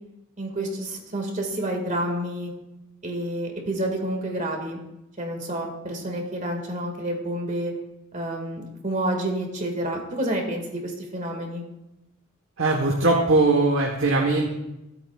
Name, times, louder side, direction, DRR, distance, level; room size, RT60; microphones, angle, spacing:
voice 1, 0.4-2.5 3.0-4.8 5.2-7.7 8.1-11.6, right 1 dB, 40° right, 2 dB, 2.0 m, -29 dB
voice 2, 12.6-14.5, right 2 dB, 70° right, 0 dB, 1.3 m, -20 dB
16.0 x 8.7 x 2.4 m, 0.92 s
head